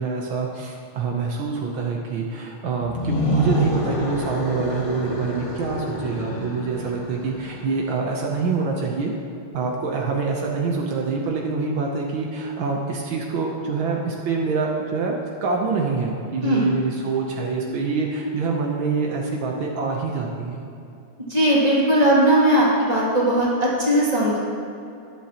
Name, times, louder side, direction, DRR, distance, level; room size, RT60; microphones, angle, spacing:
voice 1, 0.0-9.1 9.5-15.1 15.4-20.6, right 4 dB, 75° right, 0 dB, 1.7 m, -25 dB
sound 1, 2.8-7.9, left 1 dB, 35° left, 0.5 m, -28 dB
voice 2, 21.3-24.4, right 1 dB, 20° right, -6 dB, 2.5 m, -18 dB
20.0 x 7.4 x 2.9 m, 2.7 s
omnidirectional pair, 2.3 m